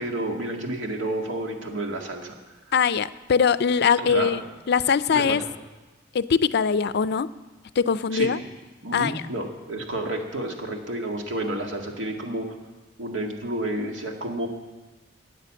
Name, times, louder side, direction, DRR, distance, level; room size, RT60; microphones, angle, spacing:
voice 1, 0.0-2.3 4.0-4.4 5.1-5.4 8.1-8.3 8.8-12.5 13.0-14.5, right 1 dB, 80° right, 2 dB, 1.9 m, -30 dB
voice 2, 2.7-4.4 4.7-5.4 6.1-7.3 7.8-8.4 8.9-9.1, left 6 dB, 60° left, 15 dB, 0.4 m, -21 dB
13.5 x 9.2 x 7.5 m, 1.2 s
head